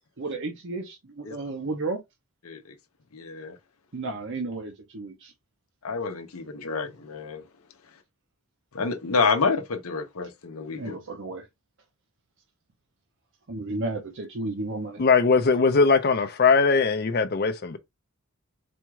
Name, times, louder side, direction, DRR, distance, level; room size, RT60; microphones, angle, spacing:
voice 1, 0.2-2.0 3.9-5.3 10.8-11.4 13.5-15.0, right 2 dB, 55° right, 0.7 m, -33 dB
voice 2, 2.4-2.8 3.1-3.6 5.8-7.4 8.7-11.0, left 4 dB, 80° left, 0.8 m, -28 dB
voice 3, 15.0-17.8, left 4 dB, 45° left, 0.6 m, -20 dB
4.3 x 2.3 x 4.6 m
head